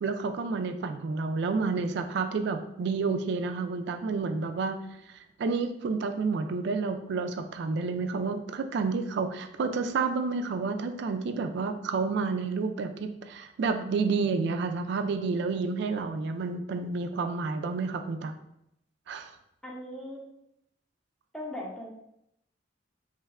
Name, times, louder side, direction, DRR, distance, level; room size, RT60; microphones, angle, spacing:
voice 1, 0.0-4.8 5.4-18.3 19.1-19.3, right 4 dB, 65° right, 7 dB, 0.3 m, -30 dB
voice 2, 19.6-20.2 21.3-21.9, left 1 dB, 5° left, -3 dB, 0.6 m, -38 dB
3.0 x 2.2 x 3.5 m, 0.80 s
head